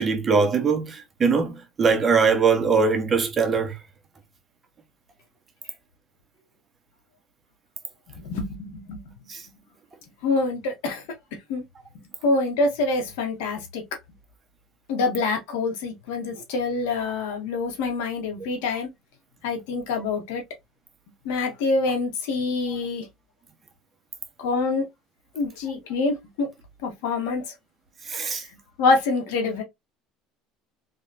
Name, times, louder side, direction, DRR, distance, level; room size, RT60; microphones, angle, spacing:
voice 1, 0.0-3.7 9.3-9.4 28.1-28.4, right 5 dB, 30° right, 1.2 m, -21 dB
voice 2, 8.1-9.0 10.2-11.0 11.5-11.6 12.2-13.8 14.9-18.9 19.4-20.4 21.2-23.0 24.4-24.8 25.3-26.5 26.8-27.4 28.8-29.6, left 3 dB, 80° left, 1.5 m, -25 dB
3.4 x 3.4 x 2.8 m
supercardioid pair, 100°, 0 cm